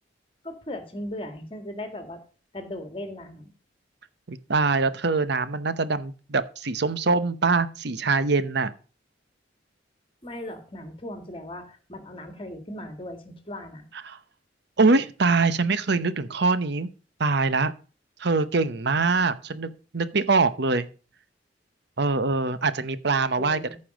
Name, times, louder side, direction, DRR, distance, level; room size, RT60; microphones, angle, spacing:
voice 1, 0.4-2.2 2.5-3.5 10.2-13.8 23.4-23.8, left 1 dB, 30° left, 7 dB, 2.0 m, -38 dB
voice 2, 4.3-8.7 14.0-14.2 14.8-16.9 17.2-17.7 18.2-20.9 22.0-23.8, right 3 dB, 65° right, 13 dB, 0.8 m, -23 dB
14.5 x 5.4 x 5.1 m, 0.36 s
head